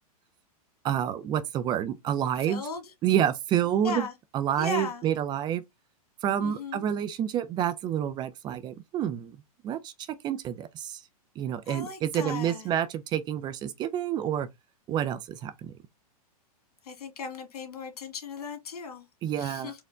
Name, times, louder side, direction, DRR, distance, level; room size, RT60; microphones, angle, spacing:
voice 1, 0.8-2.6 3.0-4.1 4.3-5.6 6.2-9.4 9.6-9.9 10.2-11.0 11.4-14.5 14.9-15.7 19.2-19.7, right 10 dB, 25° right, 0.4 m, -28 dB
voice 2, 2.5-2.8 3.8-4.1 4.6-5.1 6.4-6.8 11.7-12.7 16.8-19.1 19.4-19.8, left 4 dB, 85° left, 1.9 m, -37 dB
4.4 x 2.1 x 3.6 m
hypercardioid pair, 135°, 19 cm